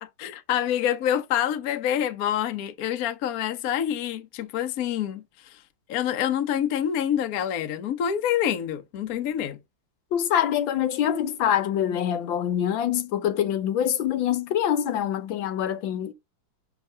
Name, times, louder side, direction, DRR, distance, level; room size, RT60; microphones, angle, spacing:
voice 1, 0.0-5.6 5.9-9.6, left 10 dB, 60° left, 1.1 m, -27 dB
voice 2, 10.1-16.1, left 10 dB, 80° left, 1.5 m, -25 dB
5.9 x 3.5 x 5.4 m
omnidirectional pair, 2.1 m